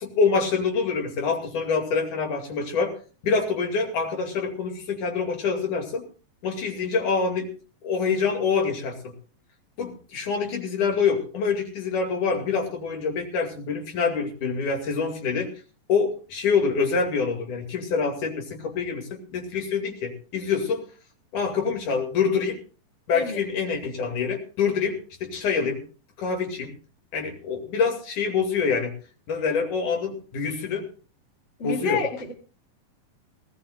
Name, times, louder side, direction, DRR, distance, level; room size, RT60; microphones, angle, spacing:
voice 1, 0.0-3.0 3.2-6.1 6.4-7.5 7.8-9.0 9.8-15.5 15.9-20.8 21.3-22.6 23.1-25.8 26.2-26.7 27.1-28.9 29.3-30.9 31.6-32.0, left 5 dB, 60° left, 3 dB, 3.8 m, -26 dB
voice 2, 31.6-32.3, left 3 dB, 25° left, 2 dB, 2.0 m, -28 dB
18.5 x 18.5 x 2.4 m, 0.37 s
omnidirectional pair, 4.0 m